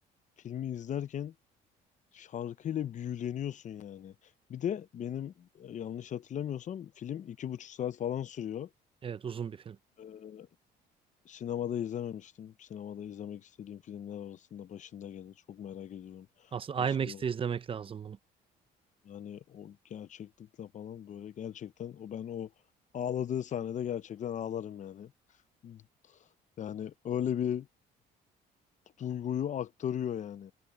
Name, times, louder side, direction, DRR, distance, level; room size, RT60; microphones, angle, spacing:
voice 1, 0.4-1.3 2.1-4.1 4.5-8.7 10.0-10.5 11.3-16.3 16.8-17.2 19.1-20.3 20.6-22.5 22.9-25.1 25.6-25.8 26.6-27.7 29.0-30.5, left 9 dB, 45° left, 0.8 m, -37 dB
voice 2, 9.0-9.8 16.5-18.2, right 7 dB, 30° right, 0.7 m, -33 dB
cardioid pair, 110°, 17 cm